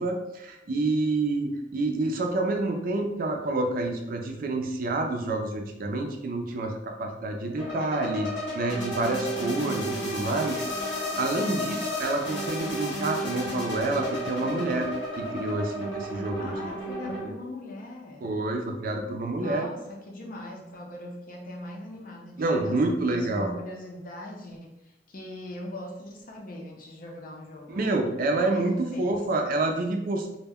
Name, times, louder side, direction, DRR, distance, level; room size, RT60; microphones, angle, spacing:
voice 1, 0.0-10.8 11.2-14.9 15.2-16.5 17.2-17.3 18.2-19.7 22.4-23.5 27.7-30.4, right 2 dB, 50° right, 3 dB, 0.4 m, -28 dB
sound 1, 7.6-17.2, equal, 90° left, 1.0 m, -32 dB
voice 2, 16.4-18.3 19.4-27.8 28.5-29.1, left 1 dB, 50° left, 0 dB, 0.5 m, -40 dB
2.1 x 2.1 x 3.4 m, 0.92 s
head